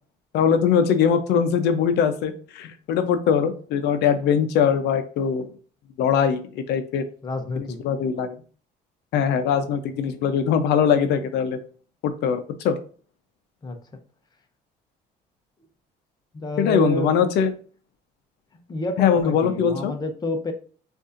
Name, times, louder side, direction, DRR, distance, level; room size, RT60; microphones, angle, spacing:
voice 1, 0.3-5.5 6.0-7.0 7.6-8.4 9.1-11.6 12.0-12.8 16.6-17.5 19.0-19.9, left 7 dB, 80° left, 9 dB, 0.7 m, -21 dB
voice 2, 7.2-7.8 13.6-13.8 16.3-17.1 18.7-20.5, left 1 dB, 25° left, 5 dB, 0.8 m, -28 dB
6.3 x 2.6 x 2.5 m, 0.42 s
cardioid pair, 110°, 17 cm